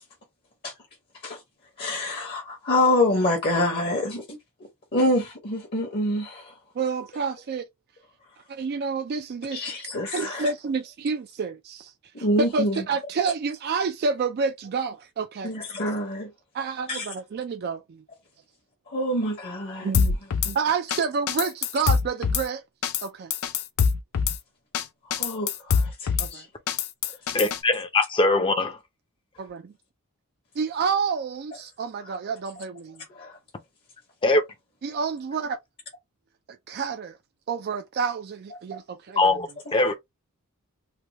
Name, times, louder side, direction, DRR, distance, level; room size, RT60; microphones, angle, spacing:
voice 1, 1.8-6.6 9.5-10.5 12.1-12.9 15.4-16.3 16.9-17.1 18.9-19.9 25.0-26.5 32.0-32.2 33.1-33.4, left 1 dB, 45° left, 0.9 m, -26 dB
voice 2, 6.8-7.6 8.5-9.6 10.1-11.9 12.2-12.3 12.5-15.5 16.5-18.0 19.8-20.2 20.4-22.6 23.0-23.3 26.2-26.4 29.4-29.6 30.6-33.0 34.8-35.6 36.7-37.2 37.5-39.3, right 5 dB, 45° right, 0.3 m, -29 dB
Drum kit / Snare drum, 19.9-20.5 20.9-21.0 21.3-22.4 22.8-23.0 23.3-24.4 24.7-24.8 25.1-26.3 26.7-27.6, left 6 dB, 80° left, 0.5 m, -24 dB
voice 3, 27.3-28.8 34.2-34.4 39.2-39.9, left 2 dB, 25° left, 0.6 m, -22 dB
3.3 x 2.2 x 2.9 m
head